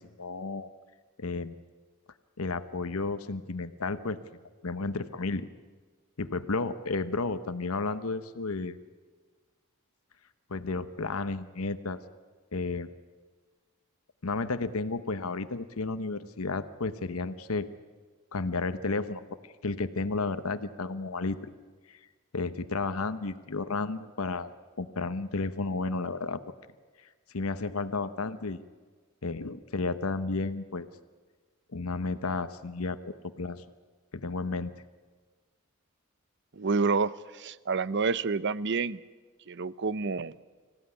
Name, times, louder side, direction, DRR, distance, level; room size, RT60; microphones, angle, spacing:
voice 1, 0.2-0.7 1.2-1.6 2.4-4.2 4.6-5.5 6.2-8.8 10.5-12.0 12.5-12.9 14.2-17.7 18.3-21.5 21.9-22.0 22.3-26.4 27.3-28.6 29.2-30.9 31.7-33.6 34.1-34.7, left 3 dB, 90° left, 12 dB, 1.0 m, -32 dB
voice 2, 36.5-39.0 39.5-40.4, right 4 dB, 55° right, 17 dB, 0.7 m, -28 dB
25.5 x 16.0 x 9.8 m, 1.4 s
head